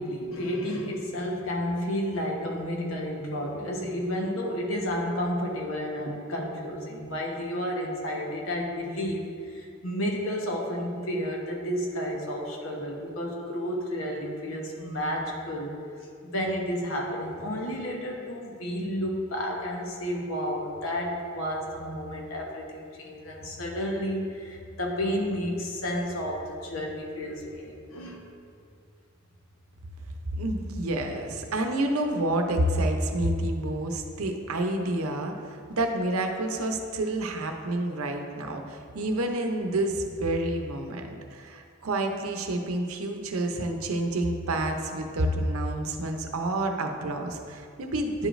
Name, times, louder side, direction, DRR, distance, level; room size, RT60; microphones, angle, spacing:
voice 1, 0.0-15.7 16.2-28.2, equal, 70° left, -1 dB, 1.1 m, -31 dB
voice 2, 30.4-48.3, right 1 dB, 85° right, 4 dB, 0.7 m, -29 dB
10.5 x 5.0 x 2.5 m, 2.3 s
head